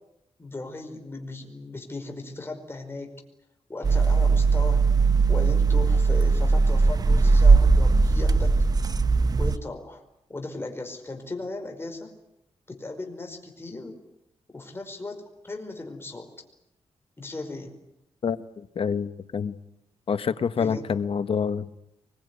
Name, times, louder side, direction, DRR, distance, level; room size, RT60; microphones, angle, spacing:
voice 1, 0.4-3.2 3.7-4.9 5.3-8.6 9.4-10.0 10.3-12.1 12.7-14.0 14.5-16.3 17.2-17.8 20.6-20.9, left 2 dB, 20° left, 3 dB, 5.1 m, -37 dB
sound 1, 3.8-9.6, right 4 dB, 35° right, 0.9 m, -19 dB
voice 2, 18.2-19.6 20.1-21.8, left 6 dB, 55° left, 12 dB, 1.3 m, -27 dB
24.0 x 22.5 x 9.7 m, 0.82 s
wide cardioid pair, 110°, 11 cm